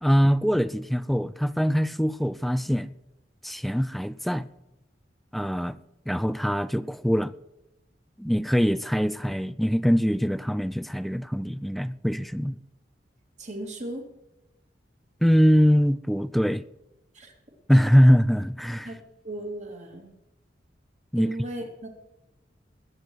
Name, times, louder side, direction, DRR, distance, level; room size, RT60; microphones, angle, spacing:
voice 1, 0.0-2.9 3.4-4.5 5.3-5.8 6.1-7.3 8.2-12.6 15.2-16.6 17.7-18.9 21.1-21.3, equal, ahead, 0.4 m, -23 dB
voice 2, 13.4-14.0 17.1-17.3 17.7-18.0 18.8-20.2 21.2-21.9, right 1 dB, 40° right, 3.1 m, -36 dB
20.5 x 9.3 x 4.8 m
head